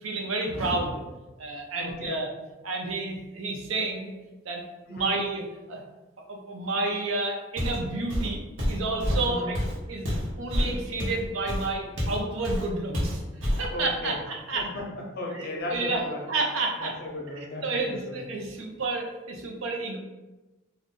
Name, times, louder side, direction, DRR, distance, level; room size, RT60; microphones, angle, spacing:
voice 1, 0.0-1.0 1.4-2.3 2.6-4.1 4.4-4.6 4.9-5.8 6.3-9.6 9.9-10.1 10.4-13.2 13.6-14.7 15.3-17.0 17.6-20.0, right 2 dB, 90° right, 1 dB, 0.6 m, -30 dB
voice 2, 1.8-2.2 4.9-5.2 9.2-9.5 13.7-14.2 14.5-16.2 16.8-18.2, left 1 dB, 50° left, -1 dB, 0.6 m, -36 dB
Walk footsteps, 7.6-7.8 8.1-12.2 12.4-12.7 12.9-13.7, equal, 70° right, 1.0 m, -28 dB
2.5 x 2.3 x 3.7 m, 1.1 s
head